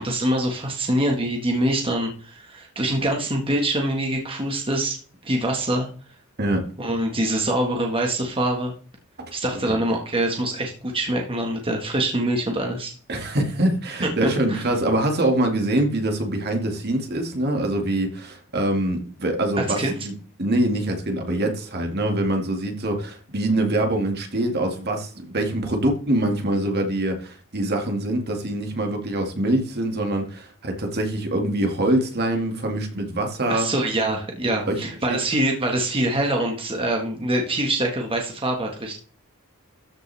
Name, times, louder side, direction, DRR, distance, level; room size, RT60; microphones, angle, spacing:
voice 1, 0.0-5.0 5.2-5.9 6.8-8.7 9.3-12.9 14.5-14.6 19.6-19.9 33.5-39.0, right 1 dB, 25° right, 1 dB, 1.6 m, -24 dB
voice 2, 6.4-6.7 9.2-9.3 13.1-20.1 20.4-33.7 34.7-34.8, right 1 dB, 50° right, 3 dB, 2.1 m, -24 dB
13.5 x 5.5 x 3.5 m, 0.41 s
head